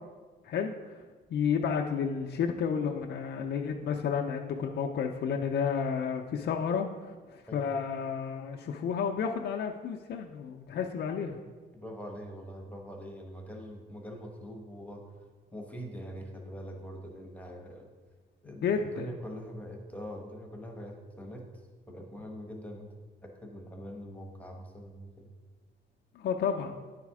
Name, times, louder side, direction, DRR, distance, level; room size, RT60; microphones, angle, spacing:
voice 1, 1.3-11.4 18.6-19.1 26.2-26.8, left 6 dB, 60° left, 2 dB, 0.5 m, -31 dB
voice 2, 11.7-15.1 15.5-17.9 18.4-22.9 23.2-25.3, equal, 5° left, 2 dB, 1.1 m, -43 dB
9.5 x 4.1 x 4.8 m, 1.4 s
cardioid pair, 90°, 20 cm